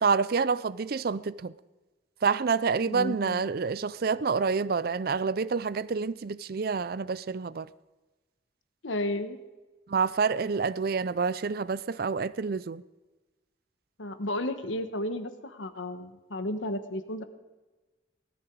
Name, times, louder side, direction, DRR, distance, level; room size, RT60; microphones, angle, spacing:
voice 1, 0.0-1.5 2.2-7.7 9.9-12.8, right 5 dB, 55° right, 0.5 m, -28 dB
voice 2, 2.9-3.5 8.8-9.4 14.0-17.2, left 1 dB, 90° left, 1.3 m, -33 dB
18.0 x 13.5 x 4.7 m
head